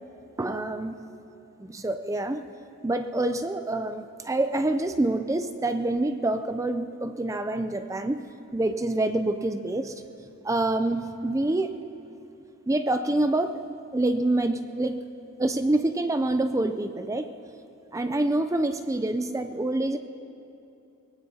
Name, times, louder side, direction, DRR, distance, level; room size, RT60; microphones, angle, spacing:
voice 1, 0.4-1.0 1.6-2.5 2.8-10.0 10.4-11.8 12.7-13.6 13.9-15.0 15.4-17.3 17.9-20.0, right 2 dB, 15° right, 9 dB, 0.4 m, -26 dB
23.5 x 20.5 x 2.8 m, 2.8 s
head